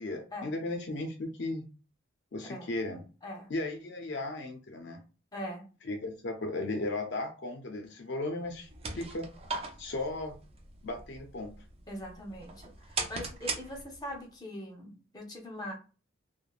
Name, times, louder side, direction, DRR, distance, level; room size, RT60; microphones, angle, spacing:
voice 1, 0.0-1.6 2.3-3.0 3.5-5.0 5.8-8.7 8.9-9.3 9.8-10.3 10.8-11.5, left 2 dB, 55° left, 4 dB, 0.4 m, -35 dB
voice 2, 3.2-3.5 5.3-5.7 11.9-15.7, left 1 dB, 20° left, 0 dB, 0.7 m, -41 dB
sound 1, 8.5-14.2, right 4 dB, 30° right, 0.4 m, -40 dB
3.2 x 2.0 x 2.4 m, 0.34 s
head